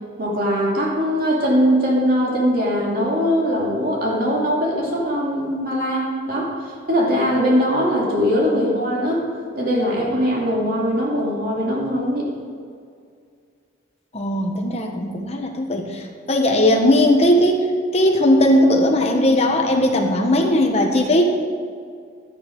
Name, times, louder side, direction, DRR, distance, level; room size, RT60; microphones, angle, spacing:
voice 1, 0.2-9.2 9.6-12.3, equal, 45° right, -3 dB, 2.7 m, -21 dB
voice 2, 14.1-16.0 16.3-17.6 17.9-21.2, left 1 dB, 30° left, 2 dB, 1.3 m, -18 dB
12.0 x 10.5 x 4.8 m, 2.2 s
head